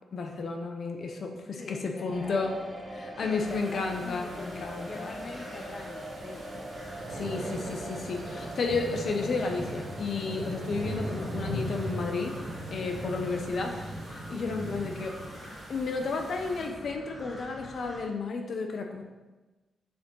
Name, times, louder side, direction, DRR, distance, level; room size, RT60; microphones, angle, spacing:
voice 1, 0.1-2.6 2.9-5.1 7.1-12.4 12.7-15.3 15.7-19.1, left 4 dB, 60° left, 4 dB, 0.8 m, -32 dB
voice 2, 1.6-2.4 3.2-6.7 14.8-14.9, left 4 dB, 45° left, 5 dB, 0.4 m, -44 dB
sound 1, 2.1-13.4, right 1 dB, 15° right, 1.4 m, -43 dB
sound 2, 3.1-18.0, equal, 15° left, 2.3 m, -48 dB
sound 3, 3.5-16.7, right 1 dB, 75° right, 1.9 m, -39 dB
6.4 x 5.3 x 3.8 m, 1.2 s
cardioid pair, 95°, 0 cm